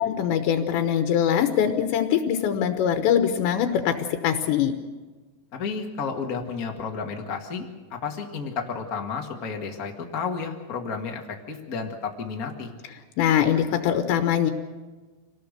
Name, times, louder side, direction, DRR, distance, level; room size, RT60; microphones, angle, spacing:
voice 1, 0.0-4.7 13.2-14.5, left 9 dB, 80° left, 7 dB, 3.2 m, -22 dB
voice 2, 5.5-7.6 7.9-12.7, left 5 dB, 50° left, 1 dB, 1.1 m, -32 dB
26.0 x 18.5 x 6.7 m, 1.3 s
omnidirectional pair, 5.1 m